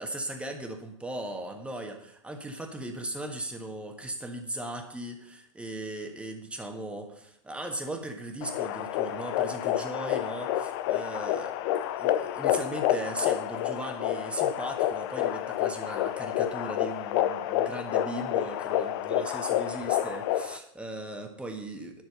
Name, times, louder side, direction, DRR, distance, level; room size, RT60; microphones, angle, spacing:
voice 1, 0.0-11.6 12.0-22.0, right 1 dB, 5° right, 4 dB, 1.5 m, -38 dB
sound 1, 8.4-20.6, left 12 dB, 50° left, 0.6 m, -29 dB
10.5 x 6.3 x 5.3 m, 0.77 s
hypercardioid pair, 100°, 17 cm